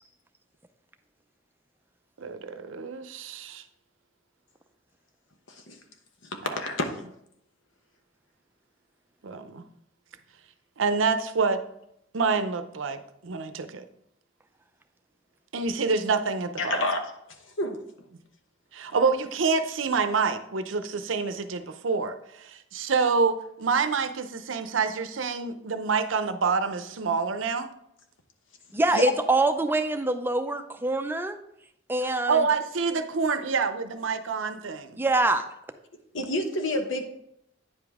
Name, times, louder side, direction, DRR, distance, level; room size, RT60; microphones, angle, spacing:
voice 1, 2.2-3.6 6.4-6.5 9.2-9.6 10.8-11.6 12.1-13.8 15.5-16.8 18.7-27.7 32.0-35.0, right 4 dB, 85° right, 10 dB, 0.6 m, -27 dB
voice 2, 5.5-5.8 6.2-6.3 6.6-7.0 16.6-17.0 17.6-17.8 28.9-29.0 36.1-37.0, left 1 dB, 75° left, 5 dB, 1.0 m, -28 dB
voice 3, 28.7-31.4 31.9-32.5 35.0-35.4, right 2 dB, 10° right, 7 dB, 0.5 m, -24 dB
9.5 x 5.1 x 3.5 m, 0.75 s
head